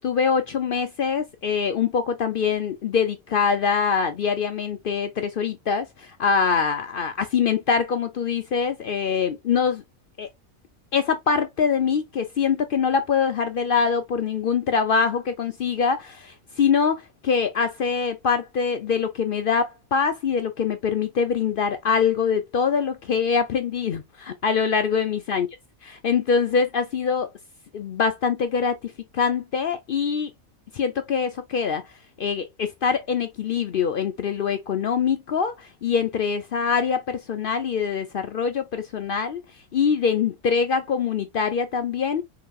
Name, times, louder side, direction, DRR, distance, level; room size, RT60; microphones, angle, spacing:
voice 1, 0.0-9.8 10.2-10.3 10.9-25.5 26.0-27.3 27.7-30.3 30.7-31.8 32.2-39.4 39.7-42.2, left 6 dB, 65° left, 0.5 m, -24 dB
5.9 x 2.8 x 2.4 m
omnidirectional pair, 1.4 m